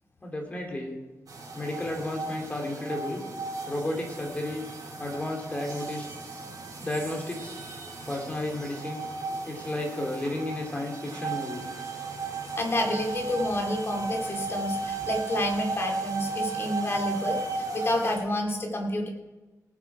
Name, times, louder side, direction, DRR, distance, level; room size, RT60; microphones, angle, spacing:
voice 1, 0.2-1.0 1.5-3.2 3.7-4.6 5.0-6.1 6.8-7.6 8.1-9.0 9.4-11.6, left 1 dB, 20° left, 1 dB, 2.9 m, -32 dB
sound 1, 1.3-18.2, right 3 dB, 75° right, 3.6 m, -35 dB
voice 2, 12.6-19.1, left 1 dB, 40° left, 1 dB, 2.4 m, -29 dB
18.5 x 7.7 x 4.8 m, 1.2 s
wide cardioid pair, 150°, 6 cm